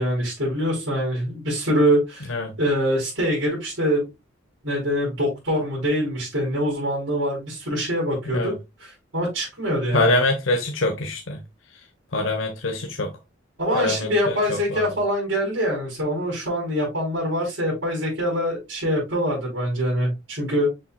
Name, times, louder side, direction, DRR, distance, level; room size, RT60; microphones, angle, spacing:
voice 1, 0.0-2.3 2.6-4.1 4.6-8.5 8.8-10.2 13.6-20.7, equal, 70° right, 4.5 m, -24 dB
voice 2, 9.9-11.4 12.1-13.1 13.7-14.9, left 2 dB, 85° left, 1.2 m, -24 dB
7.0 x 5.7 x 2.4 m
head